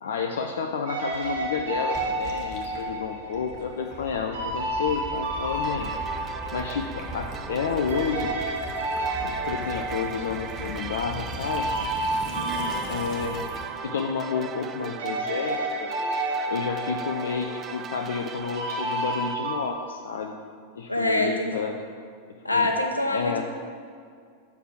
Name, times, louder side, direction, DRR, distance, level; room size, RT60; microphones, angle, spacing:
voice 1, 0.0-5.9 6.5-8.3 9.2-11.7 12.9-13.5 13.8-15.9 16.5-20.3 20.8-21.8 22.5-22.7 23.1-23.4, left 6 dB, 60° left, 3 dB, 0.4 m, -30 dB
sound 1, 0.9-7.6 7.9-14.7 15.0-19.6, right 2 dB, 60° right, 1.3 m, -31 dB
Gurgling / Liquid, 1.1-13.7, left 1 dB, 35° left, 1.2 m, -40 dB
sound 2, 5.6-19.3, right 7 dB, 25° right, 0.3 m, -39 dB
voice 2, 12.3-12.8 20.9-21.5 22.4-23.4, left 1 dB, 85° left, 3 dB, 0.7 m, -25 dB
5.8 x 4.9 x 6.3 m, 2.2 s
figure-of-eight pair, 90°, 0 cm